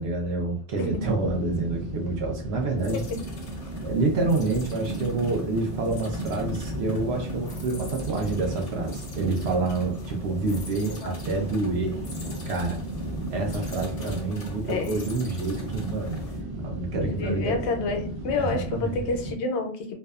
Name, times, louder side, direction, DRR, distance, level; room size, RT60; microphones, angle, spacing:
voice 1, 0.0-3.0 3.8-12.0 12.5-12.8 13.3-16.2 16.6-17.7 18.3-18.9, right 3 dB, 75° right, 1 dB, 0.8 m, -28 dB
sound 1, 0.9-19.3, right 1 dB, 40° right, 0.3 m, -35 dB
sound 2, 2.8-16.4, left 1 dB, 45° left, 0.5 m, -45 dB
voice 2, 14.7-15.0 17.1-20.0, left 3 dB, 80° left, 5 dB, 0.9 m, -29 dB
2.6 x 2.1 x 2.3 m, 0.41 s
omnidirectional pair, 1.1 m